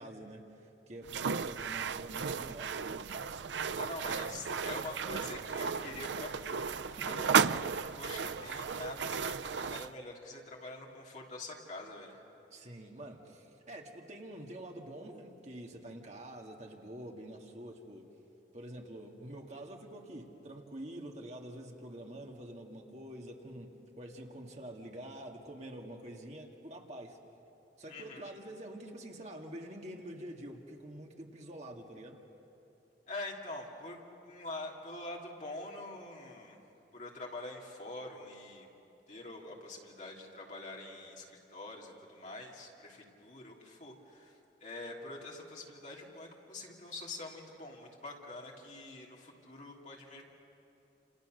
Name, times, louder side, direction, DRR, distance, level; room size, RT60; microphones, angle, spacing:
voice 1, 0.0-3.2 6.8-7.4 12.5-18.1 18.5-27.2 27.8-32.2, right 1 dB, 40° right, 1 dB, 2.1 m, -47 dB
sound 1, 1.1-9.9, right 6 dB, 85° right, 0.5 m, -34 dB
voice 2, 3.7-7.3 7.9-12.2 27.9-28.3 33.1-36.6 36.9-38.7 39.1-44.3 44.6-50.2, left 2 dB, 45° left, -2 dB, 3.2 m, -45 dB
29.5 x 28.0 x 6.5 m, 2.9 s
head